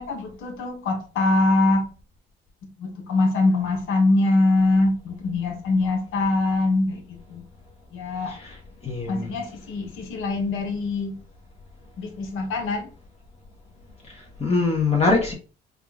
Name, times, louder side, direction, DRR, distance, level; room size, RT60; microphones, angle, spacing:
voice 1, 0.0-1.9 2.8-7.0 7.3-7.4 7.9-8.3 9.1-11.2 12.0-12.9, left 2 dB, 90° left, 1.0 m, -23 dB
voice 2, 8.8-9.3 14.4-15.3, left 3 dB, 30° left, 0.9 m, -22 dB
3.6 x 2.4 x 3.5 m
cardioid pair, 90°, 20 cm